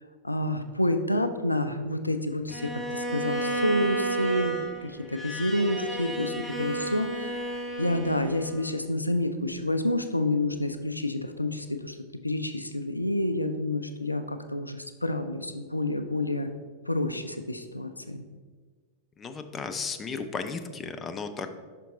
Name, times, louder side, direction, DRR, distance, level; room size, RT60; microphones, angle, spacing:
voice 1, 0.2-12.0 12.2-16.5 16.9-18.2, left 1 dB, 85° left, 8 dB, 0.3 m, -29 dB
Bowed string instrument, 2.5-8.7, right 2 dB, ahead, 1.1 m, -32 dB
voice 2, 19.2-21.5, left 5 dB, 20° left, 8 dB, 0.4 m, -34 dB
5.7 x 5.2 x 3.7 m, 1.5 s
figure-of-eight pair, 90°, 0 cm